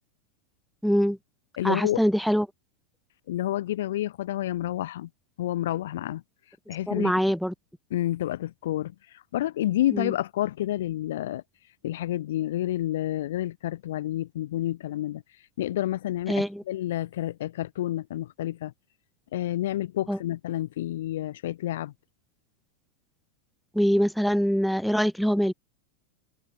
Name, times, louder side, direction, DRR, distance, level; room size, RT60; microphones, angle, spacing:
voice 1, 0.8-1.2 1.6-2.5 6.9-7.5 9.9-10.1 16.3-16.6 20.1-20.2 23.7-25.5, equal, ahead, 1.0 m, -24 dB
voice 2, 1.6-2.0 3.3-5.1 5.4-6.2 6.7-7.1 7.9-8.9 9.3-11.4 11.8-15.2 15.6-18.7 19.3-21.9, left 13 dB, 75° left, 0.9 m, -29 dB
hypercardioid pair, 105°, 0 cm